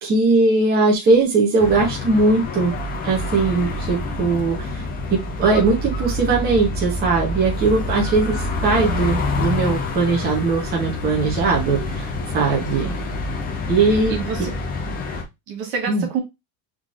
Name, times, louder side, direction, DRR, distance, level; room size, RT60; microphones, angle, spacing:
voice 1, 0.0-2.7 3.0-12.9 13.7-14.2 15.9-16.1, right 3 dB, 20° right, 0.9 m, -20 dB
sound 1, 1.6-15.2, left 2 dB, 20° left, 0.5 m, -27 dB
voice 2, 12.8-13.2 14.1-14.5 15.5-16.2, right 6 dB, 50° right, 1.5 m, -28 dB
3.7 x 3.2 x 2.5 m
cardioid pair, 165°, 46 cm